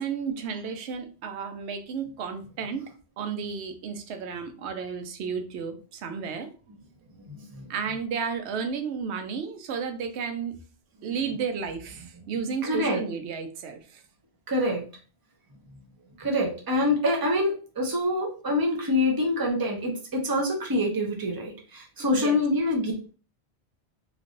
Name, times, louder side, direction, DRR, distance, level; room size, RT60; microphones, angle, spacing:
voice 1, 0.0-2.8 3.2-6.5 7.7-10.5 11.0-14.0 22.1-22.4, right 6 dB, 85° right, 7 dB, 0.8 m, -32 dB
voice 2, 7.3-7.6 12.6-13.0 14.5-14.8 16.2-22.9, left 1 dB, 25° right, 0 dB, 0.7 m, -26 dB
3.2 x 2.5 x 2.5 m, 0.37 s
omnidirectional pair, 1.1 m